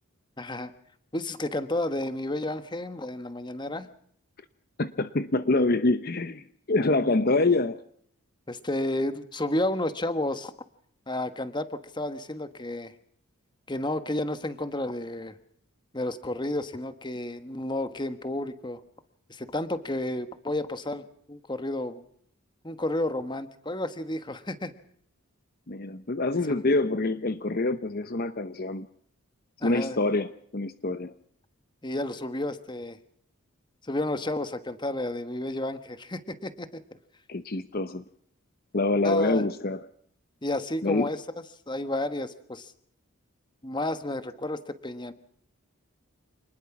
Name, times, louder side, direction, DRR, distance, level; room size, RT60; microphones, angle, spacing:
voice 1, 0.4-0.7 1.1-3.9 8.5-10.5 11.1-12.9 13.7-15.3 15.9-18.8 19.3-22.0 22.6-24.7 26.4-26.6 29.6-30.0 31.8-33.0 33.8-36.8 39.0-39.4 40.4-41.2 41.7-42.7 43.6-45.1, left 1 dB, 20° left, 11 dB, 1.3 m, -31 dB
voice 2, 4.8-7.8 25.7-28.9 29.6-31.1 37.3-38.0 38.7-39.8 40.8-41.1, left 2 dB, 45° left, 11 dB, 0.8 m, -26 dB
27.0 x 20.5 x 6.0 m, 0.65 s
head